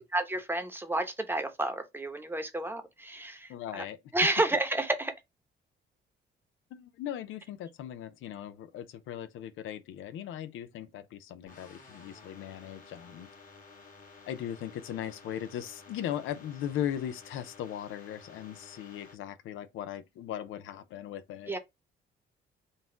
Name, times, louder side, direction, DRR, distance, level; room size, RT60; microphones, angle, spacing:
voice 1, 0.1-3.8 4.1-5.1 21.5-21.6, right 2 dB, 10° right, 0.9 m, -30 dB
voice 2, 3.5-4.3 6.7-13.3 14.3-21.6, left 10 dB, 80° left, 0.5 m, -38 dB
sound 1, 11.5-19.1, left 4 dB, 45° left, 1.5 m, -53 dB
4.0 x 2.4 x 3.7 m
cardioid pair, 90°, 20 cm